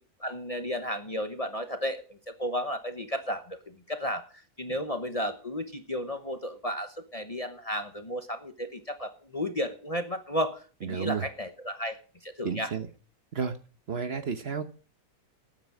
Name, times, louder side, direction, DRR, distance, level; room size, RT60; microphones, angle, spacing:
voice 1, 0.2-12.7, equal, 30° left, 8 dB, 1.0 m, -33 dB
voice 2, 10.8-11.2 12.4-12.9 13.3-13.6 13.9-14.6, right 6 dB, 50° right, 10 dB, 1.1 m, -31 dB
13.0 x 9.3 x 6.1 m, 0.39 s
omnidirectional pair, 1.5 m